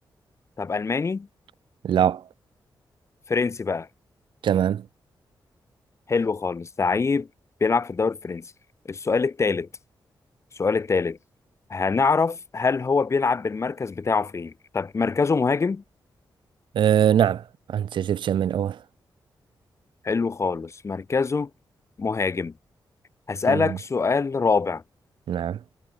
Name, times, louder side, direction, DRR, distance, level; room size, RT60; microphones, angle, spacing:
voice 1, 0.6-1.3 3.3-3.9 6.1-7.3 7.6-8.5 8.9-9.7 10.6-11.2 11.7-15.8 20.0-21.5 22.0-22.5 23.3-24.8, left 4 dB, 35° left, 4.6 m, -24 dB
voice 2, 1.8-2.2 4.4-4.9 16.7-18.8 23.5-23.8 25.3-25.6, right 9 dB, 85° right, 1.1 m, -22 dB
wide cardioid pair, 130°, 8 cm